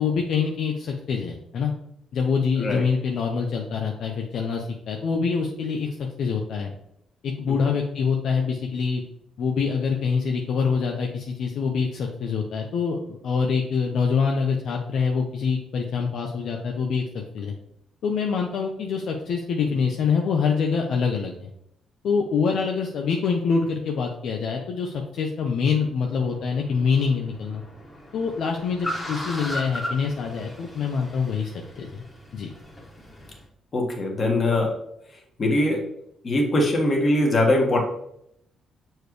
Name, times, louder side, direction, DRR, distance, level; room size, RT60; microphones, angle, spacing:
voice 1, 0.0-1.7 2.1-6.7 7.2-9.0 9.4-17.0 17.3-17.5 18.0-21.5 22.0-27.6 28.1-32.0 32.3-32.5, left 5 dB, 70° left, 1 dB, 0.7 m, -25 dB
Car, 26.0-33.4, left 1 dB, 15° left, 1.6 m, -37 dB
voice 2, 33.7-34.8 35.4-35.8 36.2-37.8, left 1 dB, 40° left, 0 dB, 1.8 m, -21 dB
6.7 x 4.6 x 3.2 m, 0.75 s
cardioid pair, 90°, 0 cm